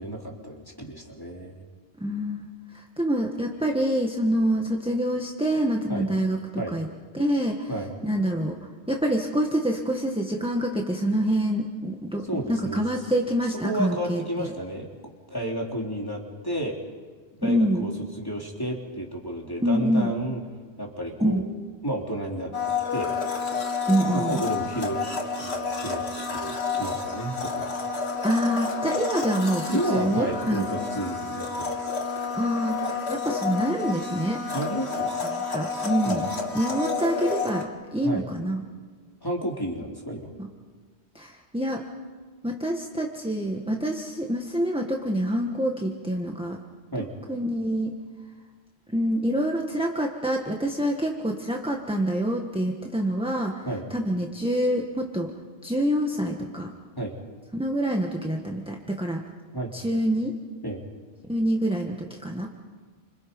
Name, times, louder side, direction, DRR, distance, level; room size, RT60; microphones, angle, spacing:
voice 1, 0.0-1.6 5.9-6.0 6.6-6.8 7.7-7.9 12.2-12.8 13.6-14.9 15.3-16.8 17.4-20.4 20.8-21.4 21.8-23.1 24.1-25.0 25.4-26.0 26.3-27.8 29.7-31.9 34.5-35.1 36.0-36.2 38.0-38.3 39.2-40.3 46.9-47.1 53.6-53.8 57.0-57.1 59.5-59.7 60.6-60.8, right 1 dB, 20° left, -1 dB, 3.4 m, -32 dB
voice 2, 2.0-2.5 2.7-6.9 7.1-7.7 8.0-8.6 8.9-14.5 17.4-17.9 19.6-20.1 21.2-21.4 23.9-24.4 28.2-30.6 32.3-34.4 35.3-36.2 36.5-38.6 41.1-41.8 42.4-46.6 47.3-47.9 48.9-55.3 55.6-56.7 57.5-59.2 59.7-60.3 61.3-62.5, equal, 5° right, 1 dB, 1.6 m, -26 dB
Domestic sounds home sounds, 22.5-37.6, left 4 dB, 65° left, 2.2 m, -30 dB
29.5 x 26.5 x 5.4 m, 1.5 s
omnidirectional pair, 1.2 m